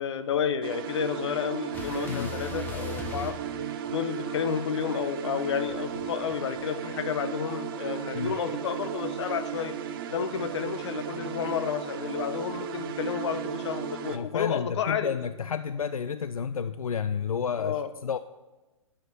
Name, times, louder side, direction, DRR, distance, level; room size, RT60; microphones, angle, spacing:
voice 1, 0.0-3.4 3.9-9.7 10.1-15.1 17.6-17.9, left 8 dB, 55° left, 11 dB, 0.8 m, -31 dB
sound 1, 0.6-14.2, right 8 dB, 40° right, 0.7 m, -35 dB
sound 2, 1.7-4.2 5.6-6.9, left 6 dB, 10° left, 1.1 m, -40 dB
voice 2, 14.1-18.2, left 7 dB, 80° left, 13 dB, 0.4 m, -31 dB
7.9 x 5.8 x 7.9 m, 1.1 s
figure-of-eight pair, 125°, 18 cm